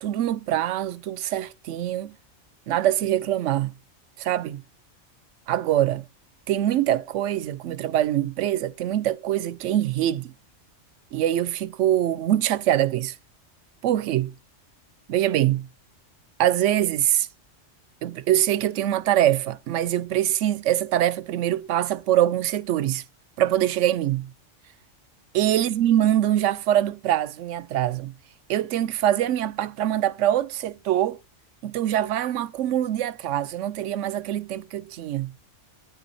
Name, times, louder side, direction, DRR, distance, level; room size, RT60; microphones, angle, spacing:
voice 1, 0.0-2.1 2.7-3.7 4.2-4.6 5.5-6.0 6.5-10.3 11.1-13.2 13.8-14.3 15.1-15.7 16.4-17.3 18.0-23.0 23.4-24.3 25.3-28.1 28.5-31.2 31.6-35.3, right 12 dB, 75° right, 0.9 m, -24 dB
9.0 x 5.8 x 4.1 m
omnidirectional pair, 1.3 m